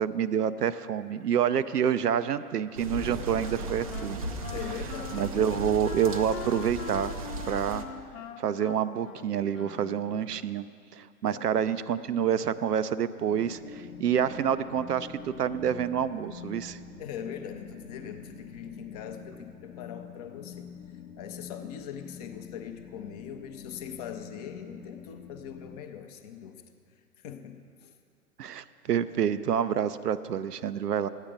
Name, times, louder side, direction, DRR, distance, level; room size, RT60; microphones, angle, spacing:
voice 1, 0.0-4.2 5.1-7.1 7.5-7.9 8.4-10.7 10.9-16.8 28.4-31.1, right 9 dB, 75° right, 13 dB, 0.5 m, -28 dB
sound 1, 2.8-7.8, right 2 dB, 25° right, 0.4 m, -36 dB
Wind instrument woodwind instrument, 2.9-10.4, left 7 dB, 55° left, 0.9 m, -42 dB
voice 2, 4.5-5.6 11.2-11.6 17.0-20.7 21.2-26.6 26.9-27.9, left 8 dB, 25° left, 6 dB, 0.6 m, -41 dB
sound 2, 13.3-25.8, left 6 dB, 75° left, 0.8 m, -46 dB
12.5 x 9.1 x 5.0 m, 2.3 s
figure-of-eight pair, 105°, 47 cm